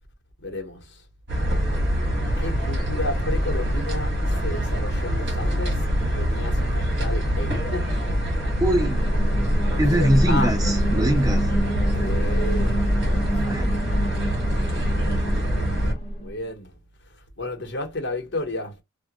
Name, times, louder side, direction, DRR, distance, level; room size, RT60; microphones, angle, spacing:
voice 1, 0.4-1.1 2.4-8.2 9.7-10.6 12.0-13.6 14.9-18.8, left 2 dB, 55° left, 1.0 m, -33 dB
sound 1, 1.3-15.9, equal, 55° right, 1.3 m, -25 dB
sound 2, 8.5-16.3, right 1 dB, 30° left, 1.2 m, -26 dB
voice 2, 8.6-9.1 9.8-11.5 13.4-13.7, right 1 dB, 15° right, 0.4 m, -23 dB
3.0 x 2.3 x 2.8 m
head